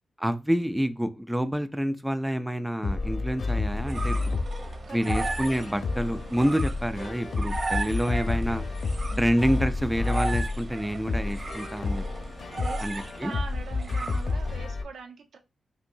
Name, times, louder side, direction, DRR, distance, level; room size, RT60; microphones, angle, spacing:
voice 1, 0.2-4.4 4.9-8.6 9.2-12.0 12.8-13.3, equal, 5° right, 0.3 m, -28 dB
sound 1, 2.8-14.8, left 3 dB, 55° left, 0.8 m, -30 dB
sound 2, 3.5-14.7, right 3 dB, 40° right, 1.0 m, -36 dB
voice 2, 13.2-15.4, right 5 dB, 75° right, 0.9 m, -41 dB
5.3 x 2.8 x 2.6 m
wide cardioid pair, 135°, 0 cm